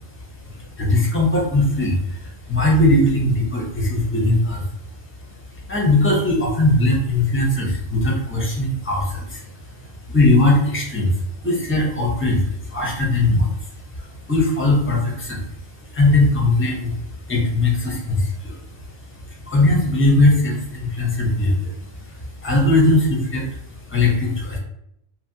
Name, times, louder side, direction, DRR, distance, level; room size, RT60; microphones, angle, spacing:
voice 1, 0.3-4.7 5.3-24.6, left 2 dB, 15° left, -3 dB, 0.4 m, -20 dB
2.9 x 2.1 x 2.6 m, 0.76 s
omnidirectional pair, 1.2 m